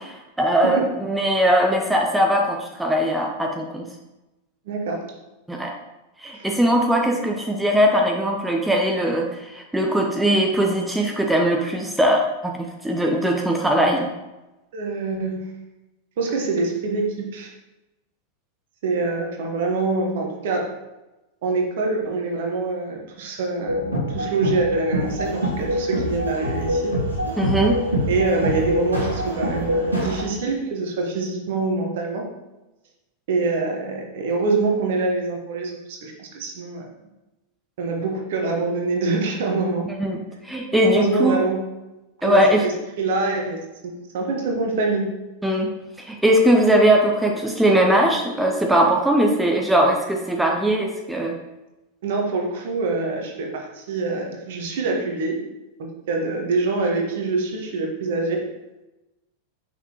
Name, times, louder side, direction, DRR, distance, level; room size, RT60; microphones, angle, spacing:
voice 1, 0.4-3.9 5.5-5.7 6.2-14.1 27.4-27.8 40.0-41.4 42.2-42.6 45.4-45.7 46.0-51.4, right 1 dB, 5° right, 1 dB, 0.7 m, -20 dB
voice 2, 4.6-5.0 6.3-6.5 14.7-15.5 16.2-17.5 18.8-20.6 21.4-27.0 28.1-32.2 33.3-36.9 37.8-39.9 40.9-41.6 42.2-42.7 43.0-43.6 43.8-45.1 52.0-55.4 56.1-58.4, right 3 dB, 55° right, 1 dB, 1.2 m, -25 dB
sound 1, 23.6-30.2, equal, 80° right, 1.7 m, -25 dB
5.9 x 5.7 x 3.0 m, 1.0 s
figure-of-eight pair, 90°, 0 cm